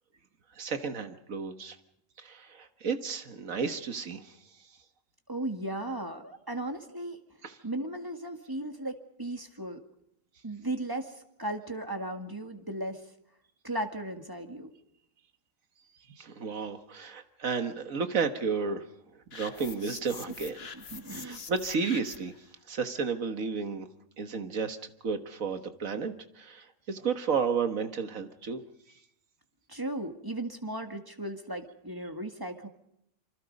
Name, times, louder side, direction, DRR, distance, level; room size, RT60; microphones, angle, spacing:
voice 1, 0.6-1.8 2.2-4.4 7.4-7.6 16.2-18.8 19.3-20.6 21.1-22.3 22.7-23.9 24.2-24.8 25.0-28.6, right 5 dB, 85° right, 8 dB, 1.9 m, -32 dB
voice 2, 5.3-7.2 7.6-9.8 10.4-13.0 13.6-14.7 20.7-21.4 29.7-32.7, right 1 dB, 15° right, 5 dB, 1.9 m, -36 dB
sound 1, 19.3-22.4, left 5 dB, 50° left, 1.4 m, -45 dB
27.0 x 25.0 x 5.4 m, 0.76 s
omnidirectional pair, 1.4 m